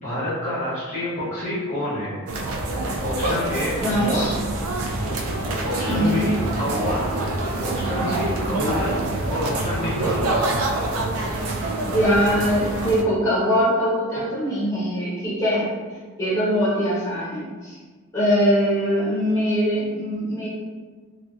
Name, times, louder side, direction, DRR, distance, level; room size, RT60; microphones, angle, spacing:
voice 1, 0.0-2.2 3.0-4.3 5.6-7.1 7.6-9.0 9.3-10.5, left 1 dB, 35° left, -12 dB, 0.7 m, -28 dB
sound 1, 2.3-13.0, right 2 dB, 80° right, 0.4 m, -26 dB
voice 2, 3.8-4.3 5.8-6.3 11.9-15.7 16.2-17.8 18.1-20.5, equal, 15° left, -9 dB, 1.0 m, -22 dB
2.5 x 2.3 x 2.3 m, 1.4 s
head